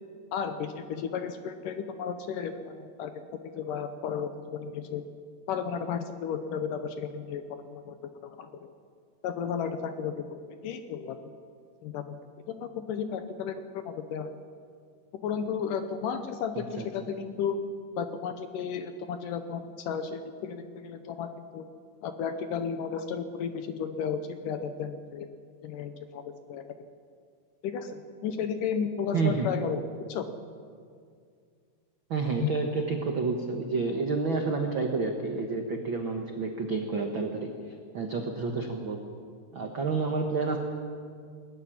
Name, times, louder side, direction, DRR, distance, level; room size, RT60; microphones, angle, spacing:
voice 1, 0.3-3.2 3.5-5.0 5.5-8.0 8.2-8.5 9.2-11.2 11.8-12.2 12.5-14.3 15.2-17.6 18.0-21.6 22.0-25.3 25.6-26.2 26.5-26.7 27.6-30.3 32.4-32.5, left 7 dB, 75° left, 9 dB, 2.2 m, -33 dB
voice 2, 29.1-29.5 32.1-37.5 37.9-39.0 39.5-40.6, right 4 dB, 85° right, 3 dB, 1.0 m, -29 dB
19.0 x 14.0 x 10.0 m, 2.2 s
omnidirectional pair, 4.4 m